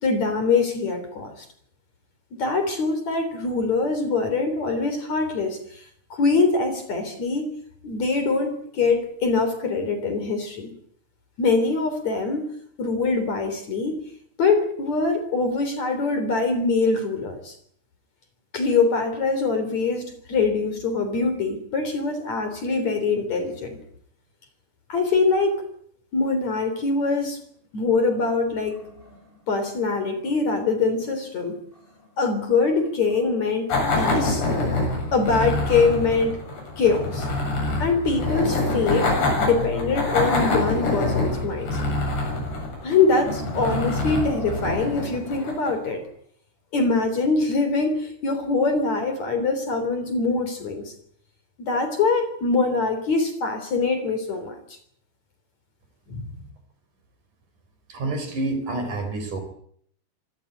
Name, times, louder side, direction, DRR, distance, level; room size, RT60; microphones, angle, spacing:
voice 1, 0.0-1.5 2.4-5.6 6.1-7.5 7.8-10.7 11.4-12.5 12.8-14.0 14.4-17.5 18.5-23.8 24.9-25.6 26.1-27.4 27.7-28.8 29.5-31.6 32.2-34.4 35.1-36.4 36.8-37.3 37.8-41.9 42.8-46.1 46.7-50.9 51.6-54.6 56.1-56.2, left 4 dB, 45° left, 9 dB, 4.4 m, -23 dB
sound 1, 28.4-31.2 31.6-32.2 32.7-33.8 34.2-34.3 34.8-34.9 37.1-37.2 37.7-39.0 39.3-39.4 41.1-41.6 41.9-42.0 42.4-44.9, left 2 dB, 10° left, 7.2 m, -41 dB
sound 2, 33.7-45.9, left 2 dB, 85° left, 10.5 m, -26 dB
voice 2, 57.9-59.4, right 2 dB, 50° right, 9 dB, 5.0 m, -28 dB
25.0 x 17.0 x 9.2 m, 0.65 s
omnidirectional pair, 4.8 m